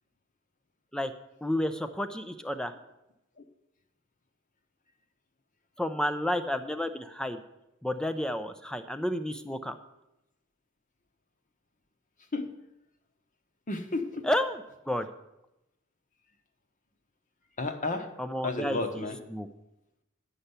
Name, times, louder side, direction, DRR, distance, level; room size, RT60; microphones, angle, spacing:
voice 1, 1.4-2.7 5.8-7.4 7.8-9.8 14.2-15.1 18.2-19.0 19.3-19.5, left 1 dB, 5° left, 9 dB, 0.5 m, -31 dB
voice 2, 13.7-14.2 17.6-18.1 18.4-19.2, left 2 dB, 40° left, 6 dB, 0.9 m, -32 dB
10.0 x 5.6 x 8.1 m, 0.89 s
head